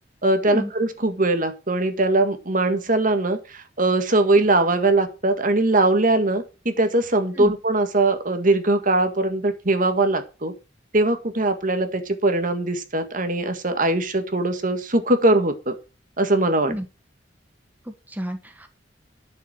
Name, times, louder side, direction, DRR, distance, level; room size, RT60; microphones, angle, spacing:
voice 1, 0.2-10.5 10.9-15.8 16.2-16.7, right 2 dB, 50° right, 8 dB, 1.8 m, -21 dB
voice 2, 17.8-18.7, equal, 10° right, 6 dB, 1.2 m, -30 dB
11.0 x 7.0 x 6.1 m, 0.31 s
head